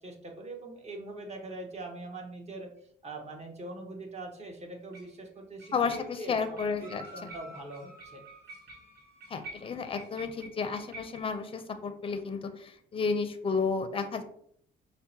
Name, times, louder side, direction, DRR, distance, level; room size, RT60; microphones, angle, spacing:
voice 1, 0.0-2.7 3.0-8.2, right 2 dB, 35° right, 2 dB, 0.9 m, -42 dB
sound 1, 2.8-2.9 4.9-5.2 5.6-11.3, right 2 dB, 55° right, 1.1 m, -50 dB
voice 2, 5.7-7.0 9.3-14.2, left 5 dB, 30° left, 8 dB, 0.5 m, -32 dB
sound 2, 6.8-10.0, right 1 dB, 15° right, 1.2 m, -52 dB
5.5 x 2.1 x 2.7 m, 0.65 s
cardioid pair, 90°, 20 cm